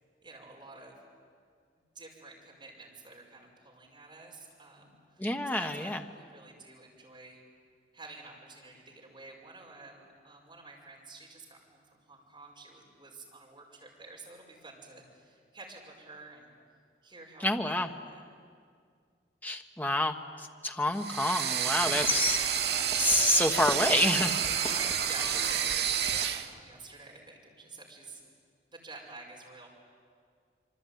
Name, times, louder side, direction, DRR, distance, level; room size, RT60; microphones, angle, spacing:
voice 1, 0.2-0.9 1.9-7.4 7.9-16.5 17.0-18.2 24.4-28.2 28.7-29.7, right 3 dB, 25° right, -1 dB, 5.5 m, -50 dB
voice 2, 5.2-6.0 17.4-17.9 19.4-24.4, left 1 dB, 10° left, 5 dB, 1.2 m, -28 dB
sound 1, 21.0-26.5, right 9 dB, 70° right, 1.4 m, -29 dB
sound 2, 21.7-26.5, left 2 dB, 30° left, 2.4 m, -42 dB
26.5 x 24.0 x 9.3 m, 2.1 s
head